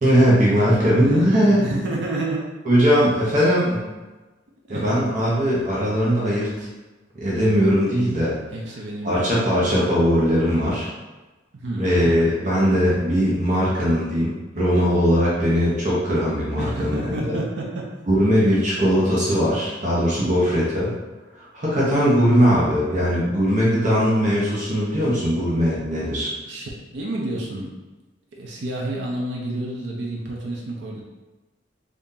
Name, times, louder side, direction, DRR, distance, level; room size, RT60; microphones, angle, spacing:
voice 1, 0.0-1.6 2.6-3.8 4.7-6.7 7.1-8.3 9.0-10.9 11.8-17.4 18.1-20.9 21.4-26.3, equal, 45° right, -7 dB, 0.9 m, -20 dB
voice 2, 0.6-2.5 4.7-4.9 8.5-9.7 11.5-11.9 16.6-17.9 26.4-27.7 28.4-31.0, right 2 dB, 70° right, -2 dB, 0.6 m, -30 dB
2.7 x 2.6 x 3.7 m, 1.2 s
head